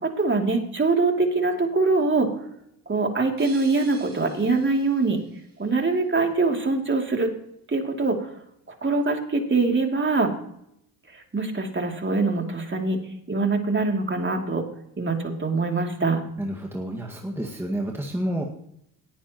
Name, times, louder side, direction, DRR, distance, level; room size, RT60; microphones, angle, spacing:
voice 1, 0.0-2.3 2.9-5.2 5.6-7.3 7.7-8.3 8.7-10.3 11.1-13.0 13.3-14.6 15.0-16.2, right 3 dB, 25° right, 2 dB, 2.8 m, -23 dB
sound 1, 3.4-6.1, right 4 dB, 45° right, 4.5 m, -47 dB
voice 2, 16.4-18.4, right 1 dB, 5° right, 0 dB, 1.8 m, -29 dB
18.0 x 10.5 x 3.0 m, 0.73 s
supercardioid pair, 65°, 45 cm